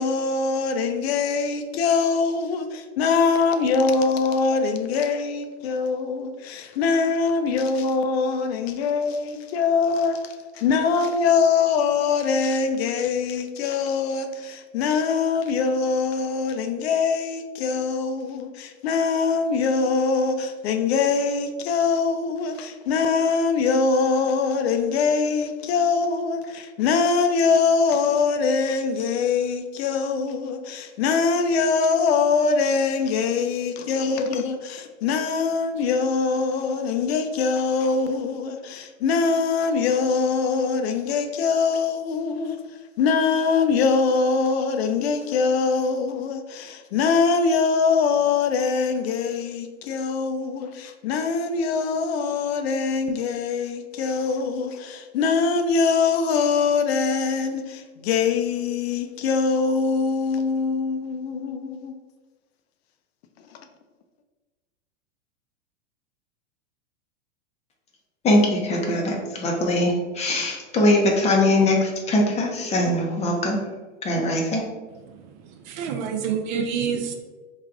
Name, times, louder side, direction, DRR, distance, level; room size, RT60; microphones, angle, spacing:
voice 1, 0.0-42.6 43.0-62.0 63.5-63.6, left 5 dB, 60° left, 0.5 m, -23 dB
voice 2, 68.2-73.6 74.0-74.6, left 1 dB, 20° left, 0.6 m, -21 dB
voice 3, 74.9-77.1, right 7 dB, 40° right, 0.4 m, -28 dB
3.2 x 2.4 x 3.4 m
hypercardioid pair, 115°, 35 cm